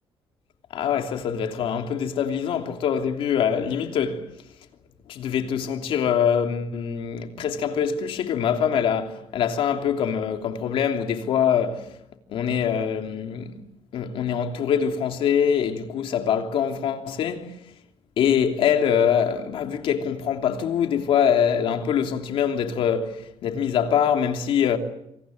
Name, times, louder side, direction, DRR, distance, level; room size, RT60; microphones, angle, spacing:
voice 1, 0.7-4.3 5.1-11.9 12.3-13.6 13.9-17.5 18.2-24.8, left 8 dB, 65° left, 3.0 m, -24 dB
27.0 x 26.5 x 7.9 m
cardioid pair, 165°, 10 cm